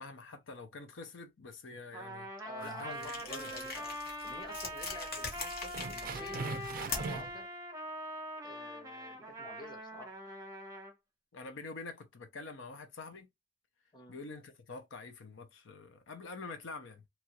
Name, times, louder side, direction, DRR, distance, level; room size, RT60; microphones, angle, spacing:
voice 1, 0.0-2.3 2.6-3.5 11.3-13.3 14.1-17.0, left 3 dB, 70° left, 0.6 m, -46 dB
Trumpet, 1.9-10.9, equal, 15° right, 0.8 m, -43 dB
voice 2, 2.4-4.0 4.2-6.5 6.8-7.5 8.4-10.1 13.9-14.1, left 1 dB, 25° left, 0.8 m, -49 dB
sound 1, 2.6-3.3 3.6-3.8 4.4-4.5 4.8-4.9 5.7-7.4, right 5 dB, 45° right, 0.4 m, -41 dB
sound 2, 3.0-7.3, left 4 dB, 50° left, 1.1 m, -42 dB
2.9 x 2.3 x 2.8 m
head